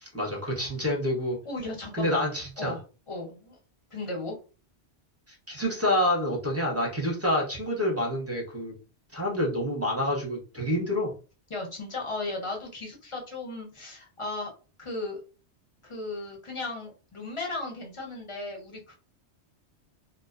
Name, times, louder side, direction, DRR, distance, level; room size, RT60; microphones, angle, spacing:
voice 1, 0.0-1.4 1.9-2.7 5.3-8.7 9.1-11.1, left 1 dB, 15° right, -3 dB, 0.6 m, -28 dB
voice 2, 1.4-2.2 2.6-2.8 3.1-3.6 3.9-4.4 11.5-14.5 14.8-15.2 15.8-19.0, left 2 dB, 35° left, 0 dB, 0.7 m, -36 dB
2.4 x 2.2 x 2.4 m, 0.33 s
omnidirectional pair, 1.2 m